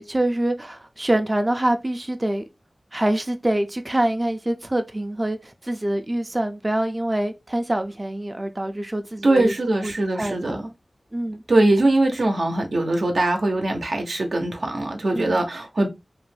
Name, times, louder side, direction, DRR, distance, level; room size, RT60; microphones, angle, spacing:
voice 1, 0.0-2.4 2.9-9.5 9.8-10.6 11.1-11.4 15.1-15.4, right 1 dB, 30° right, 0.3 m, -25 dB
voice 2, 9.2-10.6 11.5-15.9, right 2 dB, 85° right, 0.6 m, -21 dB
2.4 x 2.1 x 3.1 m
cardioid pair, 40°, 0 cm